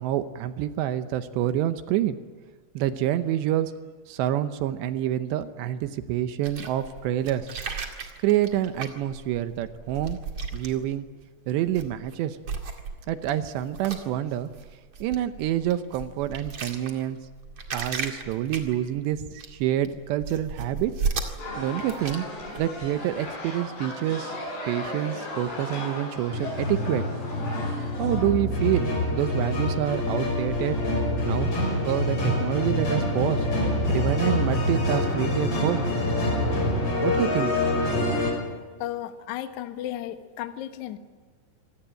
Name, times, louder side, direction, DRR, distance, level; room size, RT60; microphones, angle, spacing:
voice 1, 0.0-2.2 2.8-3.7 4.1-7.5 8.2-10.2 10.5-11.1 11.5-12.4 13.1-14.5 15.0-17.2 17.7-20.9 21.6-22.3 22.6-24.4 24.7-27.0 28.0-30.8 31.2-31.5 31.8-33.5 33.9-35.8 37.0-37.8, right 12 dB, 75° right, 10 dB, 2.8 m, -27 dB
sound 1, 6.4-11.2 11.6-12.1 12.4-23.2, right 5 dB, 45° right, 2.1 m, -36 dB
sound 2, 21.4-28.2, left 1 dB, 60° left, 9.0 m, -36 dB
sound 3, 26.3-38.3, left 1 dB, 30° left, 6.5 m, -26 dB
voice 2, 38.8-41.0, left 12 dB, 90° left, 8 dB, 1.6 m, -34 dB
26.0 x 18.0 x 8.9 m, 1.4 s
omnidirectional pair, 5.5 m